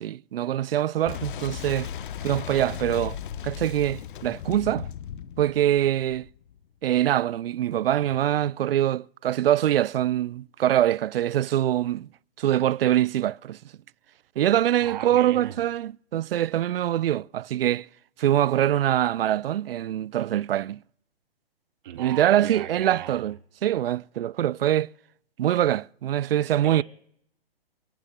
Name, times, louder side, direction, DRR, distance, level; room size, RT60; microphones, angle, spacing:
voice 1, 0.0-1.9 2.2-3.2 3.4-4.9 5.4-6.3 6.8-12.1 12.4-13.6 14.4-17.9 18.2-20.8 22.0-23.4 23.6-24.9 25.4-26.8, right 12 dB, 70° right, 0.5 m, -24 dB
Boom, 1.1-6.6, left 9 dB, 55° left, 0.9 m, -36 dB
voice 2, 14.8-15.6 21.8-23.3 26.6-26.8, right 11 dB, 50° right, 2.9 m, -37 dB
29.0 x 17.5 x 2.2 m
hypercardioid pair, 150°, 30 cm